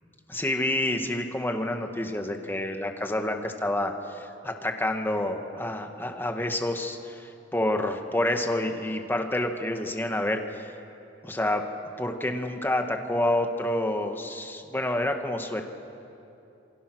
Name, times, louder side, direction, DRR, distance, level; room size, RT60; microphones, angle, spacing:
voice 1, 0.3-10.7 11.2-11.6 12.0-15.6, left 1 dB, 10° left, 4 dB, 1.6 m, -28 dB
28.0 x 23.0 x 6.3 m, 2.8 s
head